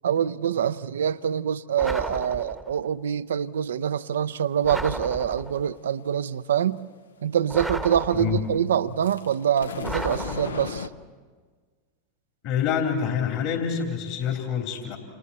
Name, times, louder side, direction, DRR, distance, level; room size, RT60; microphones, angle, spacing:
voice 1, 0.0-6.8 7.2-10.9, right 9 dB, 75° right, 0.6 m, -25 dB
sound 1, 1.8-2.8 4.6-5.7 7.5-8.7 9.8-10.9, right 1 dB, 5° right, 1.1 m, -34 dB
voice 2, 8.1-8.4 12.4-15.0, left 7 dB, 50° left, 3.6 m, -26 dB
sound 2, 9.0-10.9, left 5 dB, 80° left, 0.8 m, -35 dB
29.0 x 29.0 x 4.3 m
figure-of-eight pair, 90°, 0 cm